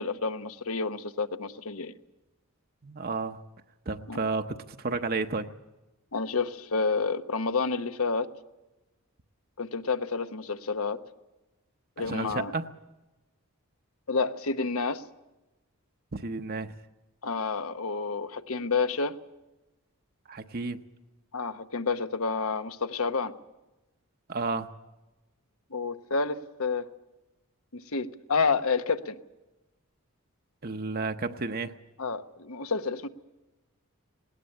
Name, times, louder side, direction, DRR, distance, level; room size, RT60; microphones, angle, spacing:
voice 1, 0.0-1.9 4.1-4.2 6.1-8.3 9.6-11.0 12.0-12.5 14.1-15.0 17.2-19.2 21.3-23.3 25.7-26.9 27.7-29.2 32.0-33.1, left 4 dB, 70° left, 10 dB, 1.0 m, -29 dB
voice 2, 2.8-3.4 3.9-5.5 12.0-12.7 16.1-16.7 20.3-20.8 24.3-24.7 30.6-31.7, right 3 dB, 45° right, 7 dB, 0.8 m, -32 dB
19.5 x 19.0 x 8.6 m, 1.1 s
head